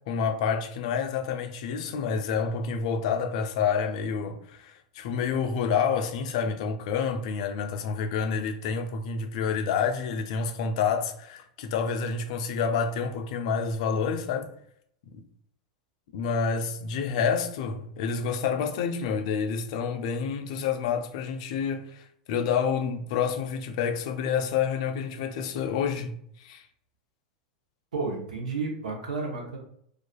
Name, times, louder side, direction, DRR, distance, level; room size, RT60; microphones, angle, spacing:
voice 1, 0.1-14.5 15.1-15.2 16.1-26.1 26.4-26.6, left 6 dB, 60° left, 0.4 m, -28 dB
voice 2, 27.9-29.6, right 4 dB, 85° right, 0.7 m, -31 dB
2.3 x 2.3 x 2.2 m
hypercardioid pair, 100°, 4 cm